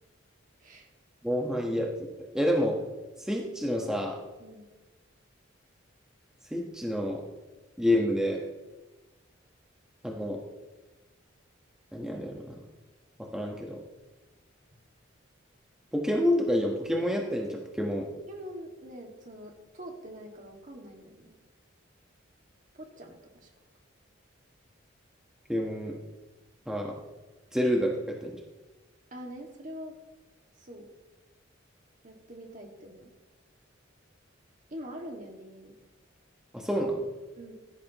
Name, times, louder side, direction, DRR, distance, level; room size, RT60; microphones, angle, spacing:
voice 1, 1.2-1.9 2.3-2.8 3.2-4.2 6.5-7.2 7.8-8.4 10.0-10.4 11.9-12.4 13.3-13.8 15.9-18.1 25.5-26.0 26.7-26.9 27.5-27.9 28.2-28.3 36.5-37.1, equal, 5° right, -1 dB, 1.3 m, -28 dB
voice 2, 4.4-4.7 18.3-21.4 22.7-23.5 29.1-30.0 30.6-30.9 32.0-33.1 34.7-35.8 37.4-37.5, equal, 40° right, 1 dB, 2.1 m, -44 dB
16.5 x 12.5 x 3.1 m, 1.2 s
head